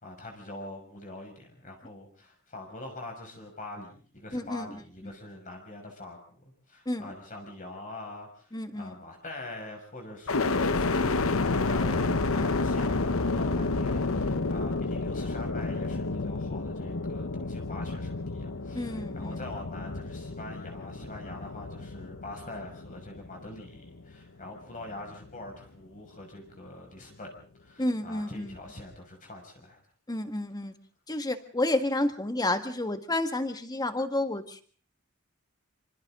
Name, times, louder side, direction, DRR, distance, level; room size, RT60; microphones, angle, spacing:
voice 1, 0.0-27.3 27.6-29.8, left 2 dB, 40° left, 2 dB, 6.0 m, -44 dB
voice 2, 4.3-4.8 6.9-7.1 8.5-8.9 12.3-12.5 18.8-19.5 27.8-28.5 30.1-30.7 31.1-34.6, left 1 dB, 20° left, 8 dB, 1.7 m, -30 dB
sound 1, 10.3-24.3 24.8-25.5, left 3 dB, 70° left, 1.0 m, -30 dB
27.0 x 26.0 x 3.8 m, 0.43 s
head